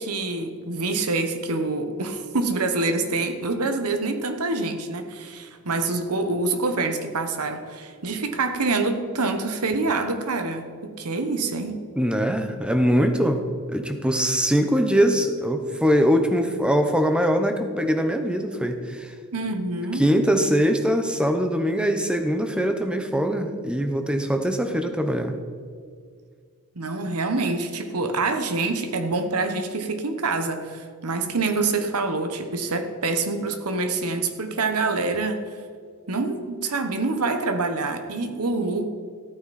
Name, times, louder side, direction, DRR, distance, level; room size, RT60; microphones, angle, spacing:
voice 1, 0.0-11.8 19.3-20.0 26.7-35.4 36.1-38.9, right 3 dB, 90° right, 7 dB, 1.2 m, -26 dB
voice 2, 12.0-13.4 13.7-19.1 20.0-25.3, equal, 5° right, 6 dB, 0.9 m, -22 dB
14.5 x 9.2 x 4.3 m, 2.1 s
head